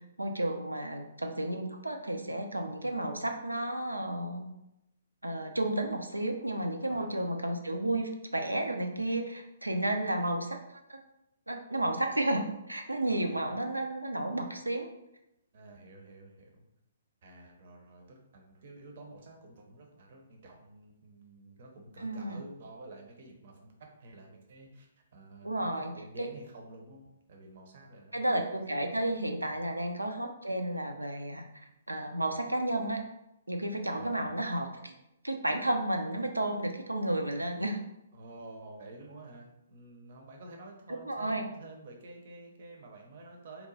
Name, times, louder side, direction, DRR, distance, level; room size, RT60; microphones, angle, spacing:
voice 1, 0.2-4.5 5.2-10.6 10.9-11.0 11.5-14.9 22.0-22.4 25.4-25.9 26.2-26.3 28.1-31.5 31.9-33.0 33.5-34.9 35.2-37.8 41.0-41.5, right 1 dB, 90° right, 4 dB, 0.5 m, -32 dB
voice 2, 13.1-13.6 15.5-16.6 17.2-28.4 29.5-29.7 33.9-34.3 38.1-43.7, right 2 dB, 50° right, 2 dB, 0.7 m, -50 dB
2.8 x 2.2 x 4.0 m, 0.86 s
figure-of-eight pair, 125°, 0 cm